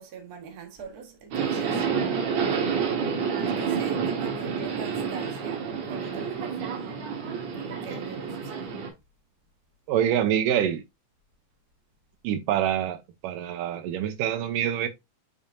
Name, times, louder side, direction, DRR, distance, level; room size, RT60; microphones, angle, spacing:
voice 1, 0.0-1.9 3.4-7.1 7.7-8.8, right 6 dB, 40° right, 1.5 m, -43 dB
Subway metro underground, 1.3-8.9, right 6 dB, 65° right, 2.6 m, -29 dB
voice 2, 9.9-10.8 12.2-13.0 13.2-14.9, right 10 dB, 90° right, 2.5 m, -25 dB
7.1 x 5.2 x 2.7 m
omnidirectional pair, 3.7 m